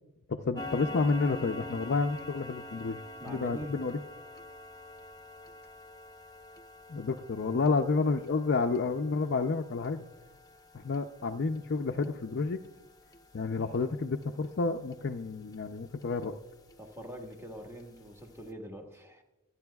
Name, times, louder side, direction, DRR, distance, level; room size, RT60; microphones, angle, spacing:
voice 1, 0.3-3.0 3.3-4.0 6.9-10.0 10.7-12.6 13.3-16.4, left 4 dB, 55° left, 4 dB, 0.5 m, -30 dB
sound 1, 0.6-15.7 16.0-16.2 16.7-16.8 17.2-17.3 17.8-17.9 18.2-18.3, left 1 dB, 20° left, 0.8 m, -46 dB
voice 2, 3.2-3.7 16.8-19.2, equal, 15° right, 2 dB, 1.6 m, -44 dB
26.0 x 9.7 x 2.3 m, 1.0 s
head